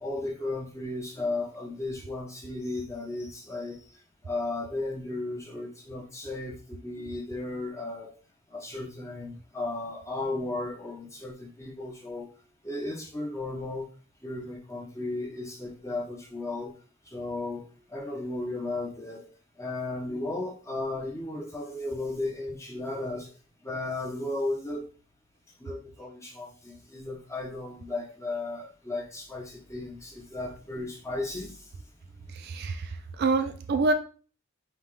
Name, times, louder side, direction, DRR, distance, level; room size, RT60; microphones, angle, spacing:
voice 1, 0.0-3.8 4.2-8.1 8.5-12.3 12.6-13.9 14.2-16.7 17.1-19.3 19.6-23.3 23.6-24.8 25.6-31.6, left 2 dB, 15° left, 0 dB, 0.8 m, -35 dB
voice 2, 32.3-33.9, right 3 dB, 50° right, 7 dB, 0.4 m, -27 dB
5.3 x 2.3 x 3.2 m, 0.38 s
head